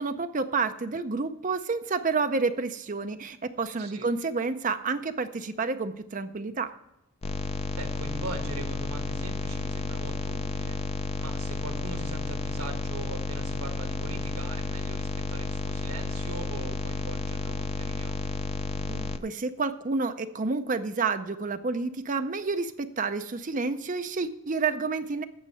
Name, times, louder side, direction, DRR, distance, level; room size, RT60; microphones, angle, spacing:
voice 1, 0.0-6.7 18.8-25.2, right 4 dB, 35° right, 9 dB, 0.5 m, -29 dB
voice 2, 3.8-4.1 7.8-10.8 11.2-18.4, right 2 dB, 80° right, 5 dB, 1.5 m, -41 dB
sound 1, 7.2-19.2, left 3 dB, 25° left, 0.4 m, -32 dB
9.4 x 6.6 x 7.7 m, 0.87 s
head